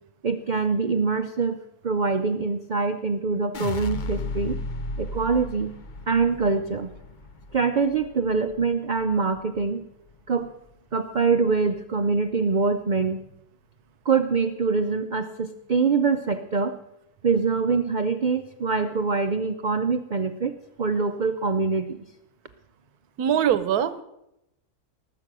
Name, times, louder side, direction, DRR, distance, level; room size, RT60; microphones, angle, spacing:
voice 1, 0.2-1.6 1.8-4.6 5.0-5.7 6.1-6.9 7.5-9.9 10.3-10.5 10.9-13.2 14.0-16.8 17.2-20.5 20.8-22.1, right 4 dB, 60° right, 9 dB, 0.4 m, -24 dB
sound 1, 3.5-9.7 10.1-10.7, left 2 dB, 50° left, 0.5 m, -35 dB
voice 2, 23.2-24.0, right 9 dB, 75° right, 14 dB, 1.3 m, -22 dB
19.0 x 7.7 x 6.1 m, 0.86 s
omnidirectional pair, 1.6 m